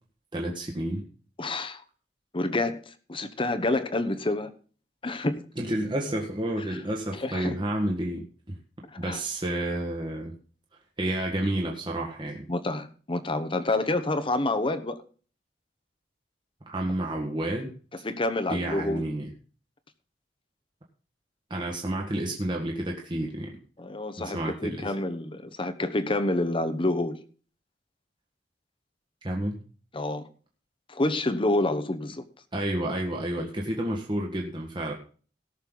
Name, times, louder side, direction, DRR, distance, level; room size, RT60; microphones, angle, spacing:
voice 1, 0.3-1.0 5.6-8.6 9.0-10.3 11.0-12.5 16.7-17.7 18.5-19.3 21.5-23.6 24.2-24.9 29.2-29.6 32.5-34.9, right 1 dB, 25° right, 1.6 m, -30 dB
voice 2, 1.4-1.8 2.3-4.5 5.0-5.4 6.7-6.8 7.2-7.6 8.9-9.2 12.5-15.0 18.0-19.1 23.8-27.2 29.9-30.3 30.9-32.2, left 2 dB, 30° left, 1.0 m, -28 dB
18.0 x 6.7 x 3.9 m
head